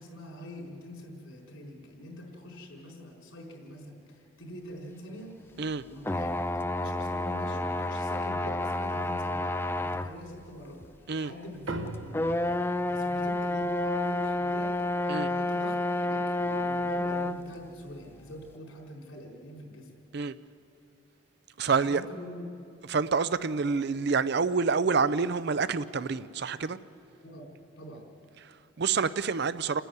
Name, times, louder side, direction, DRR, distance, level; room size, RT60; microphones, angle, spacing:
voice 1, 0.0-19.9 21.7-22.4 27.2-28.1, left 1 dB, 80° left, 4.5 m, -45 dB
sound 1, 6.0-10.1 10.8-10.9 12.1-17.4, left 2 dB, 10° left, 0.4 m, -29 dB
sound 2, 11.7-16.4, right 2 dB, 75° right, 1.2 m, -43 dB
voice 2, 21.6-22.0 22.9-26.8 28.4-29.8, right 5 dB, 55° right, 0.5 m, -27 dB
29.0 x 10.0 x 9.4 m
head